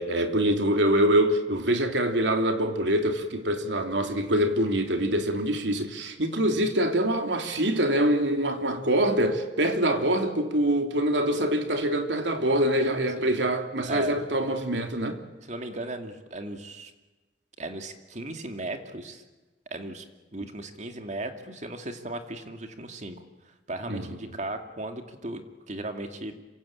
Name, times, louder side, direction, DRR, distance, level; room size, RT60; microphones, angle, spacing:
voice 1, 0.0-15.2 23.9-24.1, right 1 dB, 85° right, 3.1 m, -25 dB
voice 2, 13.9-14.2 15.4-16.9 17.6-19.2 19.7-20.0 20.3-23.2 23.7-26.3, right 2 dB, 40° right, 2.5 m, -36 dB
27.0 x 25.0 x 8.8 m
head